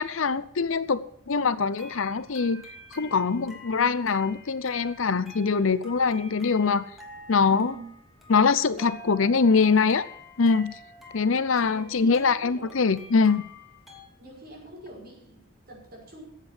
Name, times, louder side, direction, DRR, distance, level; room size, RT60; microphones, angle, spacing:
voice 1, 0.0-2.6 2.9-6.8 7.3-7.7 8.3-10.1 10.4-10.7 11.1-13.4, left 5 dB, 75° left, 15 dB, 0.7 m, -23 dB
sound 1, 1.7-14.1, left 2 dB, ahead, 2.8 m, -48 dB
voice 2, 7.5-7.9 8.7-8.9 11.6-12.9 14.2-16.2, right 1 dB, 45° right, -2 dB, 5.8 m, -46 dB
10.5 x 8.3 x 9.3 m, 0.67 s
head